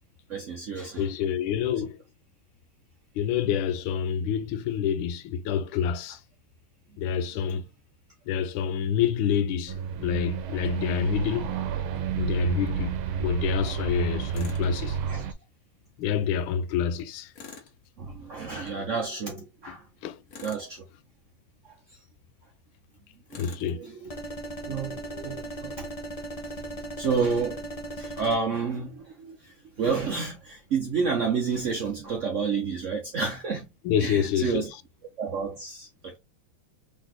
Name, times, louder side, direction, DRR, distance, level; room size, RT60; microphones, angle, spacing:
voice 1, 0.3-1.1 15.0-15.3 18.0-19.9 20.4-20.8 23.3-24.1 24.7-25.8 27.0-27.6 28.0-33.7 34.0-34.7 35.2-36.2, right 5 dB, 60° right, 0.8 m, -30 dB
voice 2, 1.0-2.0 3.2-6.2 7.0-7.6 8.3-11.5 12.1-15.0 16.0-17.3 19.7-19.8 20.0-20.2 23.3-23.8 33.8-34.6, left 8 dB, 90° left, 1.4 m, -27 dB
sound 1, 9.7-15.3, right 8 dB, 80° right, 1.5 m, -30 dB
Tools, 14.3-14.7 17.3-17.8 20.3-20.7 23.3-23.7, left 5 dB, 50° left, 1.3 m, -44 dB
sound 2, 24.1-28.4, right 1 dB, 70° left, 0.3 m, -37 dB
4.0 x 3.8 x 3.0 m
omnidirectional pair, 2.2 m